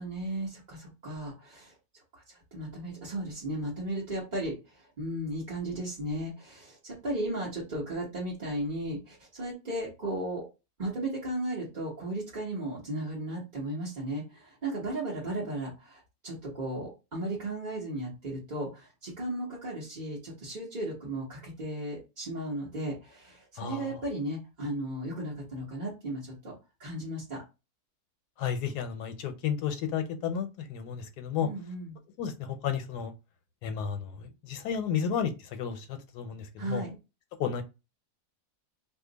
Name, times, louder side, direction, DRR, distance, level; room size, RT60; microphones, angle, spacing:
voice 1, 0.0-1.7 2.1-10.5 10.8-27.4 31.4-32.0 36.6-37.0, right 1 dB, 35° right, 0.9 m, -35 dB
voice 2, 23.6-23.9 28.4-31.5 32.2-33.1 33.6-35.3 35.6-36.8 37.4-37.6, left 7 dB, 90° left, 1.2 m, -32 dB
2.6 x 2.4 x 3.8 m
omnidirectional pair, 1.7 m